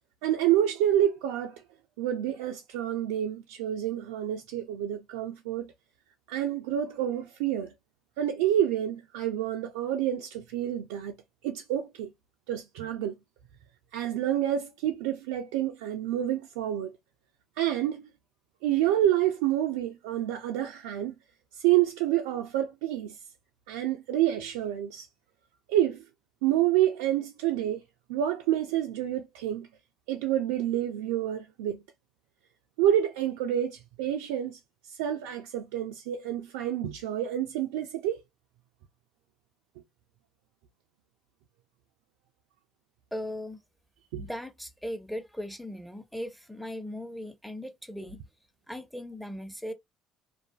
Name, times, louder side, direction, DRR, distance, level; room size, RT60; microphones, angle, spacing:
voice 1, 0.2-1.6 2.0-5.7 6.3-7.7 8.2-11.1 11.4-12.1 12.5-13.1 13.9-16.9 17.6-18.1 18.6-21.1 21.5-23.2 23.7-25.1 25.7-26.0 26.4-27.8 28.1-29.7 30.1-31.8 32.8-38.2 44.1-44.2, right 11 dB, 80° right, 0.3 m, -28 dB
voice 2, 43.1-43.6 44.1-48.2 48.7-49.7, left 1 dB, ahead, 0.7 m, -38 dB
2.5 x 2.4 x 2.2 m
hypercardioid pair, 65°, 0 cm